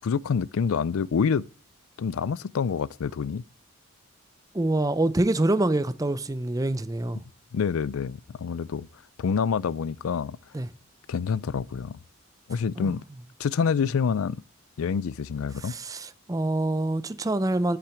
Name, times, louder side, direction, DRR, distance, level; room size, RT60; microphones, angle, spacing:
voice 1, 0.0-1.4 2.0-3.4 7.5-8.9 9.2-10.4 11.1-11.9 12.5-13.0 13.4-14.4 14.8-15.7, left 6 dB, 70° left, 0.4 m, -27 dB
voice 2, 4.5-7.2 10.5-10.7 12.8-13.0 15.6-17.8, right 2 dB, 15° right, 0.4 m, -26 dB
8.4 x 5.8 x 7.6 m
head